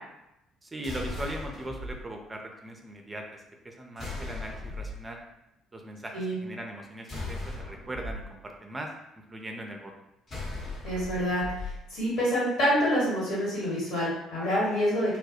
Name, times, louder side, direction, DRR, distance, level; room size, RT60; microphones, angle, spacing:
voice 1, 0.6-3.2 3.6-5.2 5.7-8.9 9.3-9.9, right 1 dB, 25° right, 2 dB, 0.4 m, -39 dB
sound 1, 0.8-1.9 4.0-5.0 7.1-8.2 10.3-11.7, left 2 dB, 45° left, 0.8 m, -37 dB
voice 2, 10.8-15.2, equal, 70° left, -7 dB, 1.3 m, -27 dB
2.2 x 2.0 x 2.8 m, 0.85 s
hypercardioid pair, 55°, 0 cm